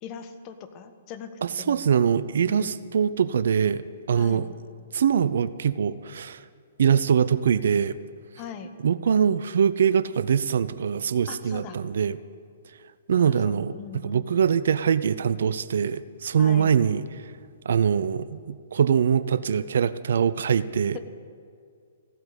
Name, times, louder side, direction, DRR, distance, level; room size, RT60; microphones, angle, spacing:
voice 1, 0.0-2.1 2.5-2.7 4.1-4.6 8.4-8.7 11.3-11.8 13.1-14.4 16.4-16.7 20.9-21.0, left 7 dB, 30° left, 8 dB, 1.1 m, -41 dB
voice 2, 1.4-4.5 4.9-6.4 6.8-8.0 8.8-12.2 13.1-17.3 17.7-21.0, right 7 dB, 60° right, 16 dB, 0.4 m, -23 dB
15.0 x 8.8 x 8.2 m, 2.3 s
figure-of-eight pair, 120°, 0 cm